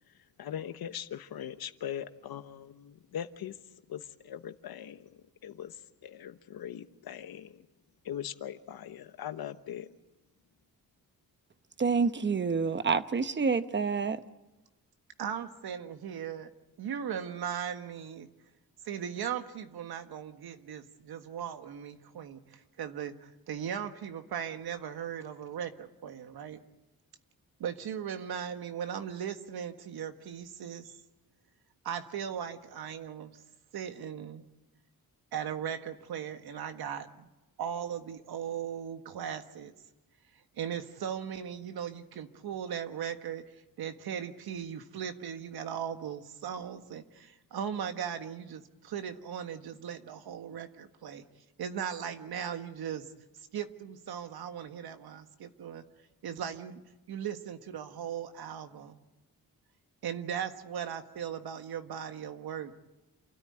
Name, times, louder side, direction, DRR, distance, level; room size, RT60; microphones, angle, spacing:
voice 1, 0.4-3.6 3.9-7.7 8.0-9.9, left 10 dB, 80° left, 10 dB, 1.2 m, -41 dB
voice 2, 11.8-14.2, right 5 dB, 30° right, 11 dB, 1.0 m, -28 dB
voice 3, 15.2-16.5 16.8-18.3 18.8-26.6 27.6-31.0 31.8-33.4 33.7-34.4 35.3-37.3 37.6-39.7 40.6-51.2 51.6-53.1 53.5-55.8 56.2-56.8 57.1-59.0 60.0-62.7, right 8 dB, 85° right, 8 dB, 1.6 m, -38 dB
28.5 x 13.5 x 9.7 m, 1.0 s
wide cardioid pair, 135°, 36 cm